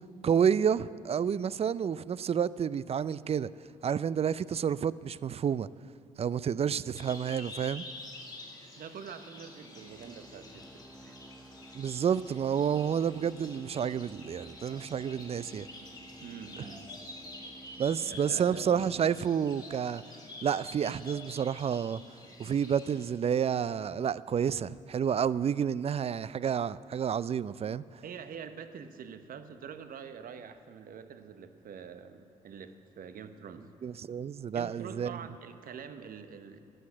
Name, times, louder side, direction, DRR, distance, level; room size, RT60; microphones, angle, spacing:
voice 1, 0.2-3.5 3.8-5.7 6.2-7.8 11.7-15.7 17.8-20.0 20.4-22.0 22.4-27.8 33.8-35.1, right 8 dB, 40° right, 0.4 m, -29 dB
sound 1, 6.9-23.1, left 2 dB, 25° left, 3.2 m, -48 dB
voice 2, 8.8-11.2 16.2-16.9 18.0-18.8 28.0-33.6 34.5-36.6, right 7 dB, 60° right, 0.9 m, -45 dB
sound 2, 9.4-20.7, right 2 dB, ahead, 0.9 m, -54 dB
12.5 x 7.9 x 8.6 m
hypercardioid pair, 50°, 17 cm